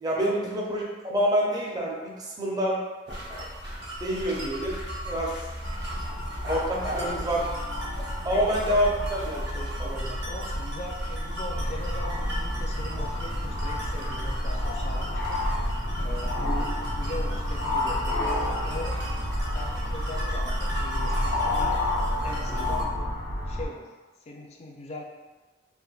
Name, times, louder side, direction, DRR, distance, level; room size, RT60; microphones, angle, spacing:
voice 1, 0.0-2.8 4.0-4.8 5.1-5.3 6.5-7.5 8.2-10.2, equal, 20° right, -3 dB, 0.4 m, -27 dB
sound 1, 3.1-22.8, equal, 80° right, 0.7 m, -37 dB
sound 2, 5.6-23.7, left 1 dB, 85° left, 0.6 m, -30 dB
voice 2, 6.8-7.3 8.3-8.8 10.3-15.4 16.0-19.0 19.5-21.8 22.2-23.1 23.5-23.9 24.3-25.0, left 2 dB, 35° left, 0 dB, 0.3 m, -40 dB
3.3 x 2.1 x 2.3 m, 1.3 s
head